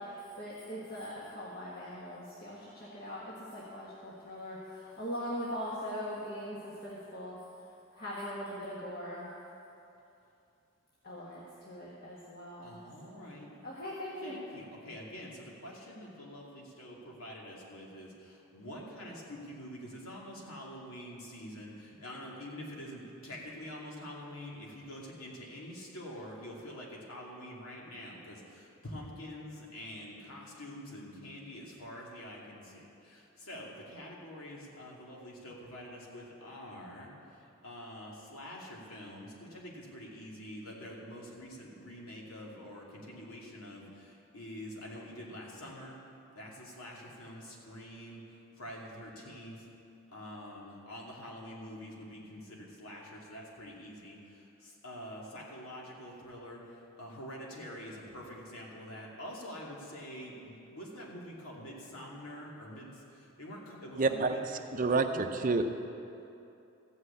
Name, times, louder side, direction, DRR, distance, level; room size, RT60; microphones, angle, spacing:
voice 1, 0.0-7.4 7.9-9.3 11.0-14.4, equal, 45° left, -6 dB, 1.5 m, -41 dB
voice 2, 12.6-13.5 14.2-46.0 46.4-48.2 48.6-49.7 50.1-64.4, equal, 85° left, -3 dB, 2.5 m, -46 dB
voice 3, 64.0-64.4 64.7-65.6, right 3 dB, 40° right, 7 dB, 0.6 m, -28 dB
14.5 x 6.4 x 8.4 m, 2.8 s
head